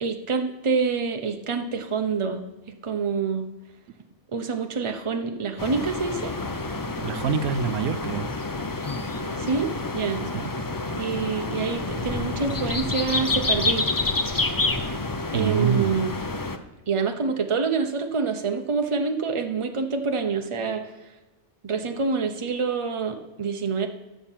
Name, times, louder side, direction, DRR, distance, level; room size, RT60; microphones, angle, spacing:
voice 1, 0.0-2.4 2.8-3.4 4.3-6.3 9.4-9.7 9.9-10.2 11.0-13.9 15.3-16.2 16.9-20.9 21.6-23.9, right 5 dB, 25° right, 5 dB, 0.9 m, -26 dB
sound 1, 5.6-16.6, left 2 dB, 30° left, 0.3 m, -28 dB
voice 2, 7.0-8.3 10.3-10.5 15.3-16.0, right 7 dB, 85° right, 12 dB, 1.1 m, -25 dB
14.5 x 5.9 x 7.4 m, 1.2 s
omnidirectional pair, 1.5 m